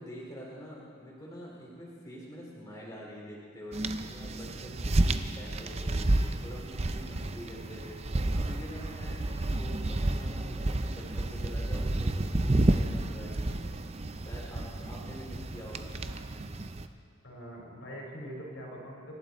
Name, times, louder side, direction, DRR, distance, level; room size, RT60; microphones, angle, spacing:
voice 1, 0.0-12.1 12.4-13.9 14.2-15.9, equal, 15° left, -5 dB, 3.3 m, -46 dB
sound 1, 3.7-16.9, right 2 dB, 30° right, 0.6 m, -31 dB
voice 2, 17.2-19.2, equal, 65° left, -2 dB, 4.5 m, -43 dB
26.0 x 12.0 x 4.2 m, 2.4 s
head